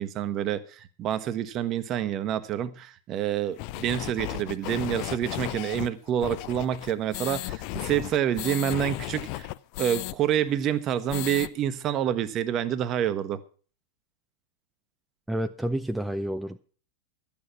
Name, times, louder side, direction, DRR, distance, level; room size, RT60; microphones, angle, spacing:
voice 1, 0.0-9.5 9.8-13.4, right 10 dB, 35° right, 1.0 m, -28 dB
sound 1, 3.6-10.2 10.5-10.6 10.9-11.5, left 18 dB, 45° left, 0.5 m, -35 dB
voice 2, 15.3-16.6, right 1 dB, 5° right, 0.5 m, -29 dB
12.5 x 8.8 x 6.0 m
figure-of-eight pair, 90°, 0 cm